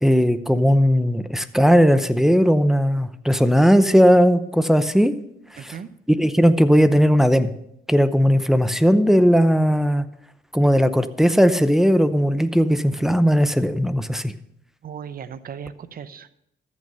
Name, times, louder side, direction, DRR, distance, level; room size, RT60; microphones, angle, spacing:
voice 1, 0.0-5.1 5.5-5.7 6.1-7.5 7.9-10.1 10.5-14.3, equal, ahead, 11 dB, 0.7 m, -17 dB
voice 2, 5.6-5.9 14.8-16.3, right 7 dB, 45° right, 14 dB, 0.8 m, -36 dB
14.0 x 6.5 x 5.5 m, 0.78 s
cardioid pair, 90°, 20 cm